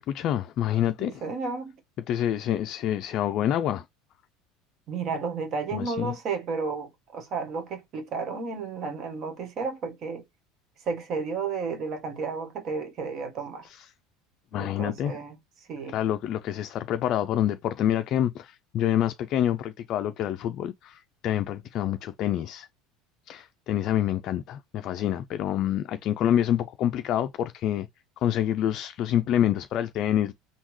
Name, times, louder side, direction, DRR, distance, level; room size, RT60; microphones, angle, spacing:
voice 1, 0.0-1.2 2.1-3.9 5.7-6.1 13.6-13.9 14.5-15.2 15.9-22.7 23.3-27.9 28.2-30.3, left 11 dB, 50° left, 0.3 m, -27 dB
voice 2, 1.0-1.7 4.9-10.2 10.9-13.6 14.5-15.3 15.7-16.0, right 4 dB, 45° right, 1.3 m, -32 dB
3.6 x 2.2 x 3.1 m
supercardioid pair, 120°, 0 cm